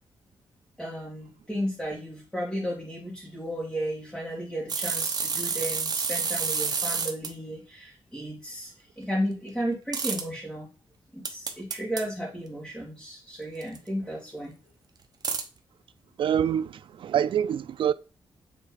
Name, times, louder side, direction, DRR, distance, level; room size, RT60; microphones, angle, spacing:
voice 1, 0.8-10.7 11.1-14.5, equal, 5° left, 1.9 m, -34 dB
sound 1, 4.7-7.3 9.9-10.2 11.3-12.0 13.6-13.8 15.2-15.4, right 5 dB, 45° right, 0.9 m, -29 dB
voice 2, 16.2-17.9, right 9 dB, 65° right, 0.3 m, -26 dB
7.2 x 3.3 x 4.7 m
wide cardioid pair, 125°, 9 cm